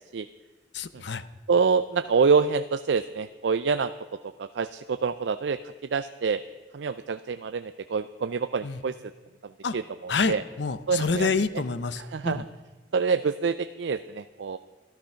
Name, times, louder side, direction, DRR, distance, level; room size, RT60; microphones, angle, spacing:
voice 1, 0.7-1.2 8.6-8.8 9.6-9.8 10.1-12.4, left 4 dB, 65° left, 13 dB, 0.7 m, -28 dB
voice 2, 1.5-3.9 4.4-5.6 5.9-6.4 6.7-9.1 9.4-10.4 10.9-11.3 12.0-12.4 12.9-14.6, right 5 dB, 70° right, 11 dB, 0.4 m, -26 dB
13.5 x 13.0 x 5.7 m, 1.3 s
head